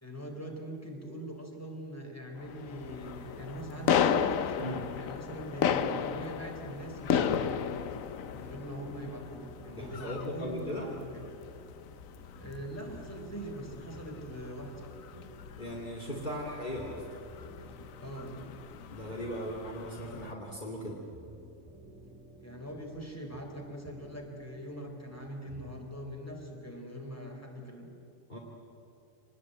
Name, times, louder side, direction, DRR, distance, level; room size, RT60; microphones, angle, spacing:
voice 1, 0.0-7.7 8.3-11.3 12.3-14.9 18.0-18.4 22.4-27.9, equal, 10° left, 1 dB, 3.9 m, -42 dB
sound 1, 2.4-20.3, left 8 dB, 85° left, 1.2 m, -35 dB
sound 2, 8.6-26.0, right 2 dB, 5° right, 6.9 m, -54 dB
voice 2, 9.7-10.9 15.6-17.1 18.9-21.0 28.3-28.4, equal, 35° left, -2 dB, 2.7 m, -38 dB
25.5 x 19.5 x 9.0 m, 2.7 s
omnidirectional pair, 1.4 m